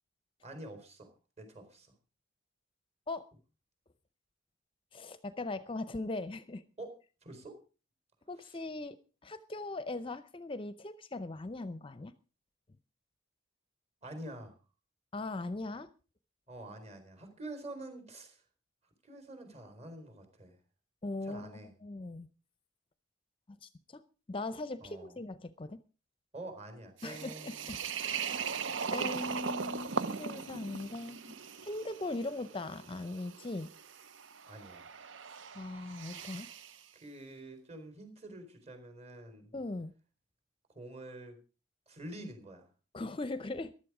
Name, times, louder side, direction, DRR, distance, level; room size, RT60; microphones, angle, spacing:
voice 1, 0.4-1.1 1.4-1.9 6.8-6.9 7.2-7.6 8.4-8.6 14.0-14.6 16.5-18.4 19.0-20.6 21.2-21.7 24.8-25.2 26.3-27.7 29.2-29.4 34.4-34.9 36.4-36.6 36.9-39.5 40.7-41.4 41.9-42.7, right 1 dB, 35° right, 7 dB, 4.3 m, -47 dB
voice 2, 4.9-6.6 8.3-9.0 9.2-12.1 15.1-15.9 21.0-22.3 23.6-24.0 24.3-25.8 27.0-28.4 28.9-31.4 31.6-33.7 35.5-36.5 39.5-39.9 42.9-43.7, left 2 dB, 30° left, 13 dB, 0.6 m, -40 dB
sound 1, 27.0-36.8, right 6 dB, 80° right, 0.8 m, -39 dB
15.0 x 12.0 x 4.9 m, 0.36 s
head